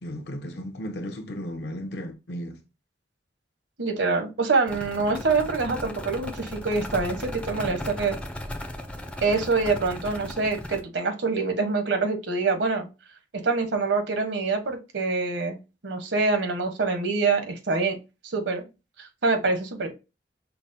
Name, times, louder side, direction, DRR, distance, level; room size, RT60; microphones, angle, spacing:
voice 1, 0.0-2.6, equal, 65° left, 0.7 m, -35 dB
voice 2, 3.8-8.2 9.2-12.9 13.4-15.6 15.8-18.0 18.2-18.6 19.0-19.9, right 4 dB, 80° right, 0.9 m, -25 dB
sound 1, 4.7-10.8, left 1 dB, 5° left, 0.4 m, -36 dB
5.6 x 2.0 x 2.6 m
head